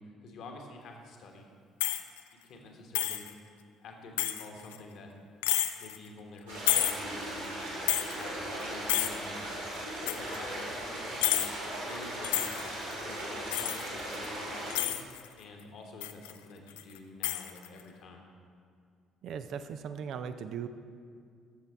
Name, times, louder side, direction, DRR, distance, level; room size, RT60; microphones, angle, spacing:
voice 1, 0.0-1.5 2.4-3.3 3.8-5.1 5.8-9.4 9.9-11.4 11.9-15.1 15.4-18.2, left 3 dB, 55° left, 2 dB, 1.3 m, -48 dB
sound 1, 1.8-2.2 2.9-3.3 4.2-4.8 5.4-6.0 6.7-7.0 7.5-7.6 7.9-8.2 8.6-8.7 8.9-9.2 10.1-10.4 11.2-11.5 12.2-12.9 13.5-14.3 14.7-15.3 16.0-16.3 16.7-17.0 17.2-17.8, left 13 dB, 70° left, 0.3 m, -30 dB
sound 2, 6.5-14.7, right 1 dB, 75° right, 2.2 m, -38 dB
voice 2, 19.2-20.7, right 7 dB, 55° right, 10 dB, 0.4 m, -38 dB
13.0 x 6.7 x 4.4 m, 2.3 s
figure-of-eight pair, 50°, 0 cm